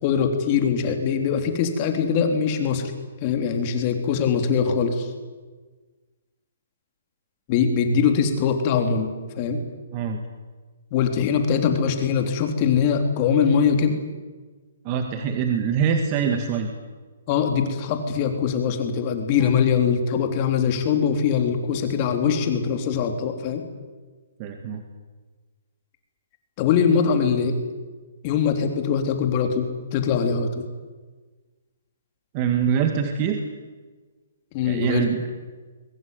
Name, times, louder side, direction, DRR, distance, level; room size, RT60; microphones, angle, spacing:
voice 1, 0.0-2.9 3.2-5.1 7.5-9.1 9.4-9.6 10.9-14.0 17.3-23.6 26.6-27.6 28.2-30.6 34.5-35.1, left 6 dB, 30° left, 5 dB, 3.5 m, -22 dB
voice 2, 9.9-10.2 14.8-16.7 24.4-24.8 32.3-33.4 34.6-35.2, right 7 dB, 30° right, 5 dB, 2.0 m, -24 dB
22.5 x 20.0 x 9.6 m, 1.3 s
hypercardioid pair, 160°, 0 cm